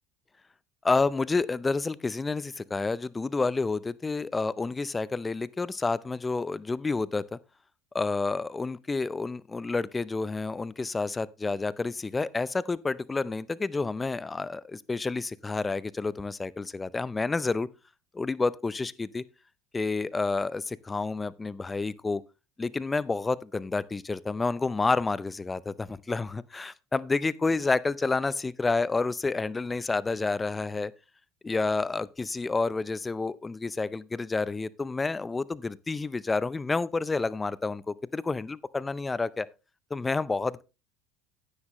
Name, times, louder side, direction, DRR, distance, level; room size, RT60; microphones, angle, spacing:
voice 1, 0.8-7.4 7.9-17.7 18.1-19.2 19.7-22.2 22.6-30.9 31.4-39.5 39.9-40.6, left 3 dB, 15° left, 0.5 m, -29 dB
9.8 x 9.7 x 3.0 m
supercardioid pair, 95°, 0 cm